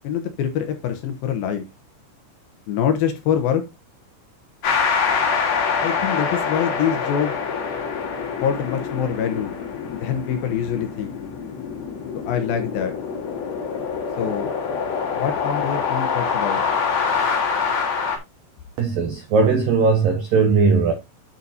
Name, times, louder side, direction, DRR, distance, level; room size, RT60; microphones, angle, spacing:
voice 1, 0.0-1.7 2.7-3.6 5.8-7.4 8.4-9.6 9.9-11.1 12.3-12.9 14.2-14.5 15.1-16.6, left 8 dB, 90° left, 2.0 m, -24 dB
sound 1, 4.6-18.2, left 5 dB, 50° left, 2.3 m, -25 dB
voice 2, 18.8-20.9, right 4 dB, 85° right, 1.9 m, -18 dB
10.0 x 6.8 x 2.8 m
omnidirectional pair, 5.7 m